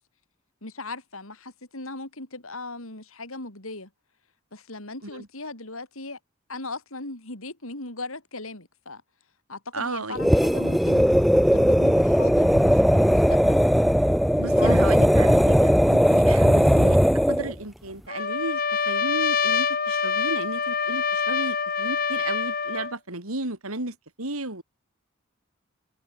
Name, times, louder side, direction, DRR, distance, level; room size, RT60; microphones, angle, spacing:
voice 1, 0.6-3.9 4.5-6.2 6.5-9.0 9.5-11.1 11.5-13.7 14.3-15.1, left 2 dB, 80° left, 5.6 m, -38 dB
voice 2, 9.7-10.2 14.4-17.0 17.3-24.6, right 2 dB, 90° right, 4.7 m, -34 dB
sound 1, 10.1-17.5, equal, ahead, 0.5 m, -18 dB
Trumpet, 18.1-22.9, left 5 dB, 45° left, 4.2 m, -25 dB
head